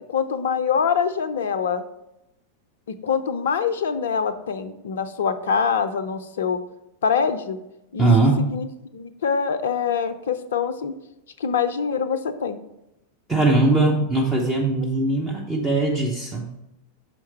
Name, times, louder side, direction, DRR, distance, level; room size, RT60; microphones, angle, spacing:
voice 1, 0.1-1.8 2.9-6.6 7.0-7.6 7.9-8.1 8.4-8.7 8.9-10.9 11.4-12.6, left 6 dB, 60° left, 11 dB, 0.5 m, -24 dB
voice 2, 8.0-8.5 13.3-16.5, right 2 dB, 15° right, -2 dB, 0.9 m, -20 dB
6.4 x 4.6 x 4.3 m, 0.87 s
figure-of-eight pair, 90°, 0 cm